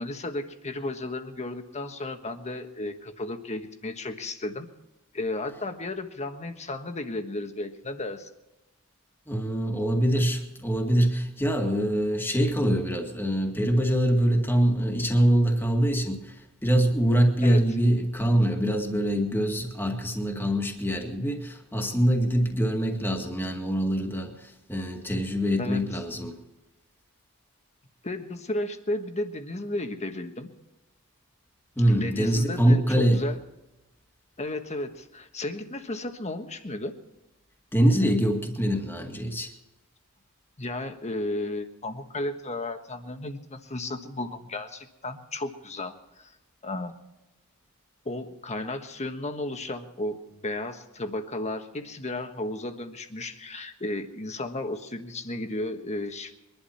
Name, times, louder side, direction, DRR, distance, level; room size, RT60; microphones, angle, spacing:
voice 1, 0.0-4.7 5.1-8.3 17.4-17.6 25.6-25.8 28.0-30.5 31.9-33.4 34.4-36.9 40.6-46.3 46.6-46.9 48.0-56.3, left 2 dB, 30° left, 1.4 m, -34 dB
voice 2, 9.3-26.4 31.8-33.3 37.7-39.5, equal, 10° left, 2.0 m, -24 dB
23.0 x 11.5 x 4.3 m
head